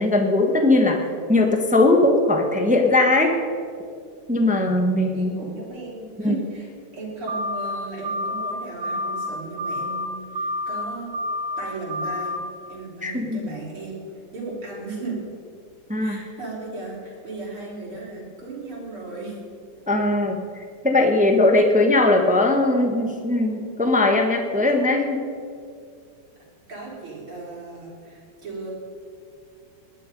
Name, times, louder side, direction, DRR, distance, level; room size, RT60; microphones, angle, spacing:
voice 1, 0.0-3.4 4.3-5.4 6.2-6.3 13.0-13.4 15.9-16.2 19.9-25.2, left 2 dB, 5° right, 3 dB, 0.6 m, -19 dB
voice 2, 5.1-11.1 11.6-12.4 12.7-14.0 14.3-15.2 16.0-19.4 26.7-28.7, right 3 dB, 90° right, -6 dB, 4.6 m, -36 dB
sound 1, 7.3-7.8 8.0-8.5 8.8-9.3 9.6-10.1 10.4-10.8 11.1-11.6 11.9-12.4, left 1 dB, 70° right, 1.8 m, -28 dB
19.0 x 11.0 x 5.3 m, 2.3 s
omnidirectional pair, 2.3 m